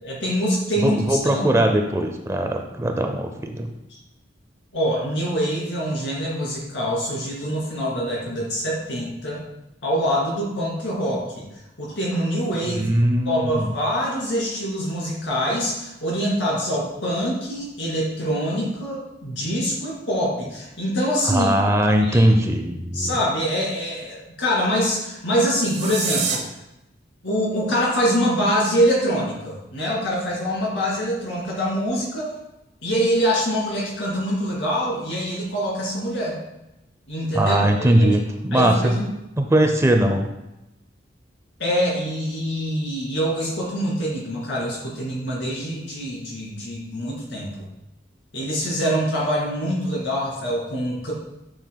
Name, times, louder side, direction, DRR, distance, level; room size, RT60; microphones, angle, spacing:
voice 1, 0.0-1.5 3.9-4.0 4.7-9.4 9.8-11.4 11.8-12.9 13.2-21.5 22.0-22.2 22.9-26.5 27.2-32.4 32.8-36.4 37.1-38.1 38.5-39.0 41.6-47.5 48.3-51.1, equal, 70° left, -4 dB, 2.5 m, -24 dB
voice 2, 0.8-3.7 12.7-13.8 21.3-23.1 37.3-38.9 39.4-40.3, right 1 dB, 15° right, 4 dB, 0.5 m, -20 dB
sound 1, 25.4-26.4, right 7 dB, 60° right, 1.0 m, -27 dB
9.1 x 5.8 x 2.2 m, 0.93 s
head